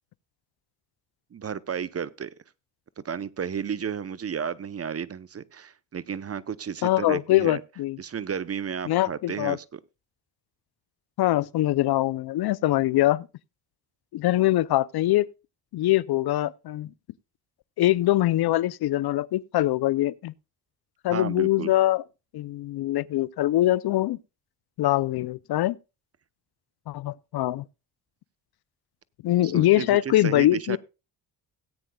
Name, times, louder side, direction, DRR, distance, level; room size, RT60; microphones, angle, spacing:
voice 1, 1.3-2.3 3.0-7.6 8.0-9.8 21.1-21.7 29.4-30.8, right 7 dB, 35° right, 0.8 m, -33 dB
voice 2, 6.8-8.0 8.9-9.6 11.2-13.3 14.1-15.3 15.7-16.9 17.8-20.3 21.0-22.0 22.3-24.2 24.8-25.8 26.9-27.6 29.2-30.8, left 15 dB, 60° left, 0.6 m, -23 dB
17.5 x 9.1 x 2.3 m
supercardioid pair, 70°, 43 cm